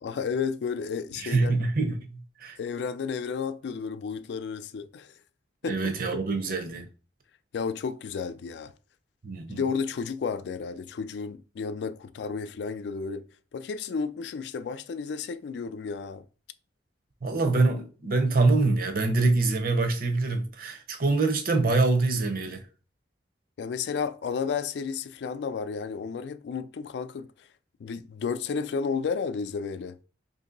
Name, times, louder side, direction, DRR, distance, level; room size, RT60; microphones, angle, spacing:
voice 1, 0.0-1.6 2.6-5.1 5.6-5.8 7.5-8.7 9.5-13.2 13.5-16.2 23.6-27.3 27.8-30.0, left 5 dB, 70° left, 0.3 m, -32 dB
voice 2, 1.2-2.6 5.6-6.9 9.2-9.6 17.2-22.6, right 3 dB, 55° right, 0.6 m, -25 dB
2.9 x 2.7 x 3.8 m
head